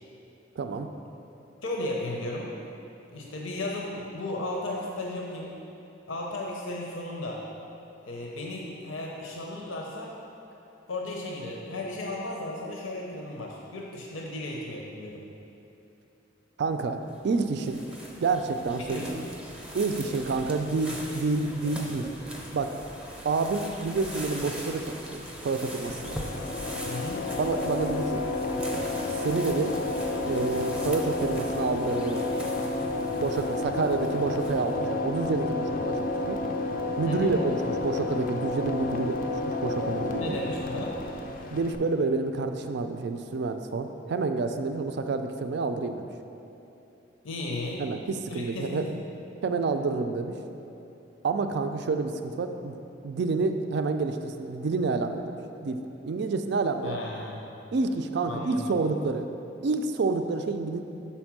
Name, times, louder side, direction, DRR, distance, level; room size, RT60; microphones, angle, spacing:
voice 1, 0.6-0.9 16.6-17.8 18.2-19.1 19.7-22.1 22.5-22.7 23.2-26.2 27.4-28.2 29.2-29.8 30.3-32.4 33.2-36.4 37.0-40.3 41.5-46.1 47.8-48.8 49.4-50.3 51.2-52.7 53.0-55.3 55.6-55.8 56.0-57.0 57.7-59.3 59.6-60.8, right 3 dB, 60° right, 7 dB, 0.4 m, -28 dB
voice 2, 1.6-2.5 3.1-5.6 6.1-7.4 8.1-10.1 10.9-15.2 18.9-19.2 26.8-27.3 37.1-37.3 40.2-41.0 47.2-47.8 48.3-48.9 56.8-57.4 58.3-58.7, left 2 dB, 85° left, -1 dB, 0.7 m, -35 dB
sound 1, 17.1-34.9, equal, 5° right, 0.6 m, -41 dB
sound 2, 25.8-41.8, left 2 dB, 45° left, 0.4 m, -31 dB
5.7 x 4.3 x 6.0 m, 2.9 s
head